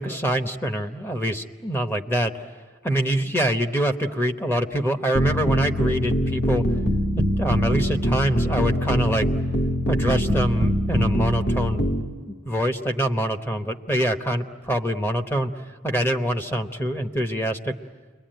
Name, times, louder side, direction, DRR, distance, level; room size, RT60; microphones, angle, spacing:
voice 1, 0.0-2.4 2.8-6.6 7.2-9.3 9.9-11.8 12.2-15.5 15.8-17.8, equal, 10° left, 6 dB, 1.0 m, -25 dB
sound 1, 5.1-12.0, equal, 55° left, 2.1 m, -23 dB
29.0 x 22.0 x 9.1 m, 1.5 s
head